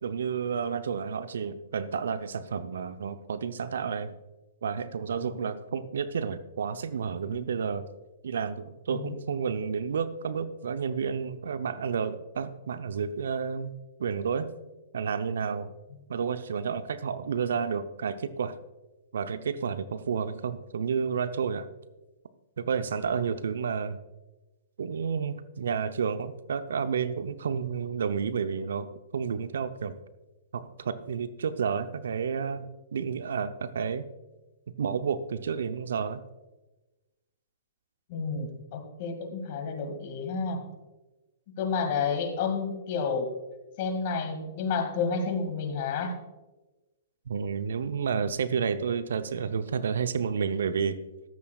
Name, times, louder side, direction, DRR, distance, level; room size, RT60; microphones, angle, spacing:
voice 1, 0.0-4.1 4.6-7.9 8.2-13.7 14.0-14.5 14.9-15.7 16.1-18.5 19.1-21.7 22.6-24.0 24.8-28.9 29.1-29.9 30.5-34.1 34.8-36.2 47.3-51.0, right 6 dB, 70° right, 11 dB, 0.7 m, -30 dB
voice 2, 5.1-5.5 7.3-7.4 8.9-9.1 38.1-40.6 41.5-43.3 43.8-46.1, left 5 dB, 50° left, 5 dB, 2.2 m, -30 dB
14.0 x 12.5 x 2.4 m, 1.1 s
figure-of-eight pair, 115°, 0 cm